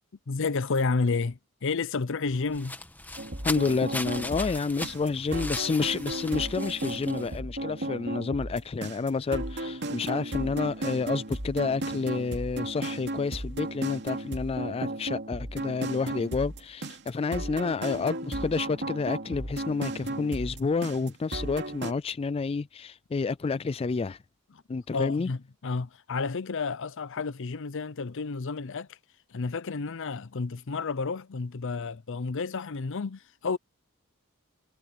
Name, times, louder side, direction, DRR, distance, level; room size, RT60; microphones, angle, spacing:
voice 1, 0.3-2.8 24.9-29.0 29.3-33.6, left 4 dB, 60° left, 0.6 m, -31 dB
sound 1, 2.3-7.4, left 2 dB, 10° left, 1.5 m, -39 dB
sound 2, 3.2-21.9, right 1 dB, 50° right, 2.7 m, -35 dB
voice 2, 3.4-24.2 24.7-25.3, left 4 dB, 25° left, 0.3 m, -29 dB
head